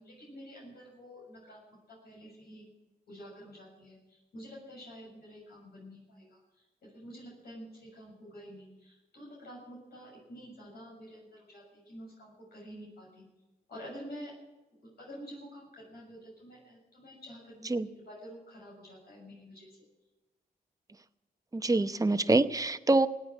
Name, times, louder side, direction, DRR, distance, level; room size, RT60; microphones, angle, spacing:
voice 1, 0.0-1.6 1.9-2.7 3.1-13.2 13.7-14.3 14.8-19.8, equal, 75° left, -3 dB, 6.8 m, -49 dB
voice 2, 21.5-23.1, right 2 dB, 20° right, 10 dB, 0.9 m, -25 dB
17.5 x 9.1 x 9.1 m, 1.1 s
cardioid pair, 50°, 16 cm